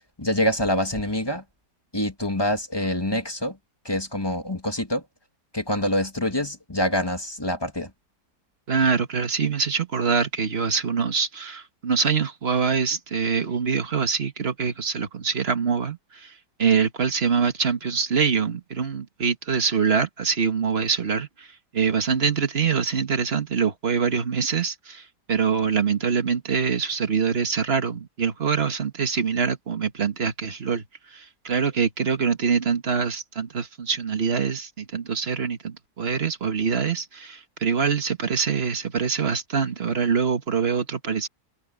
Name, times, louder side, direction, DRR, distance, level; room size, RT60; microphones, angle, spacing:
voice 1, 0.2-1.4 1.9-3.6 3.8-5.0 5.5-7.9, left 1 dB, 15° left, 2.0 m, -25 dB
voice 2, 8.7-41.3, right 6 dB, 40° right, 1.7 m, -24 dB
omnidirectional pair, 1.8 m